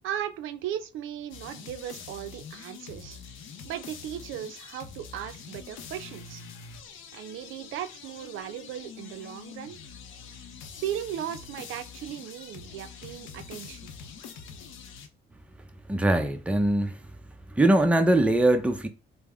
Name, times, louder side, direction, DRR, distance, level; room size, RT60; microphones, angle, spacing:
voice 1, 0.0-3.2 3.6-6.4 7.1-9.8 10.8-13.9, right 10 dB, 85° right, 0.4 m, -37 dB
sound 1, 1.3-15.1, left 6 dB, 90° left, 0.6 m, -45 dB
voice 2, 15.9-17.0 17.5-18.9, right 1 dB, 5° right, 0.5 m, -22 dB
3.3 x 2.0 x 3.4 m
cardioid pair, 90°, 20 cm